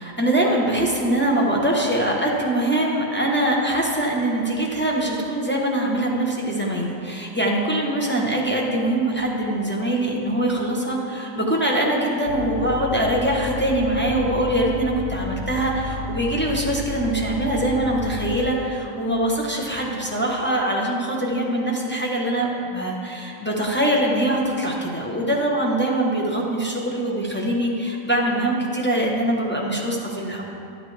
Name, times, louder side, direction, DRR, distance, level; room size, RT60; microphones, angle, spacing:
voice 1, 0.0-30.4, right 1 dB, 10° left, -3 dB, 0.8 m, -23 dB
sound 1, 12.3-18.5, left 4 dB, 80° left, 1.0 m, -32 dB
11.5 x 7.8 x 3.3 m, 2.6 s
omnidirectional pair, 1.4 m